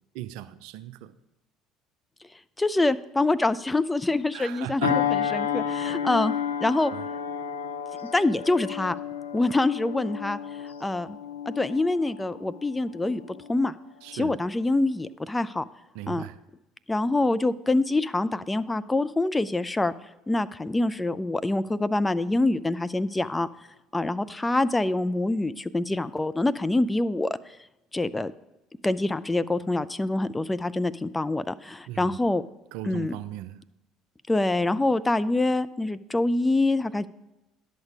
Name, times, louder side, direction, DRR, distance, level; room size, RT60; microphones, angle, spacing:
voice 1, 0.1-1.2 4.3-5.0 6.9-7.0 14.0-14.4 15.9-16.4 31.9-32.2 32.7-33.6, right 13 dB, 70° right, 0.4 m, -37 dB
voice 2, 2.6-6.3 6.6-6.9 8.0-9.0 9.3-10.4 10.8-11.2 11.5-13.2 13.5-13.7 14.1-15.6 16.1-16.2 16.9-19.9 20.3-23.5 23.9-27.6 27.9-28.3 28.8-32.4 32.8-33.2 34.3-37.1, left 2 dB, 15° left, 0.4 m, -25 dB
sound 1, 4.8-13.7 14.1-14.4, left 8 dB, 90° left, 0.6 m, -31 dB
11.0 x 6.5 x 4.7 m
hypercardioid pair, 60°, 0 cm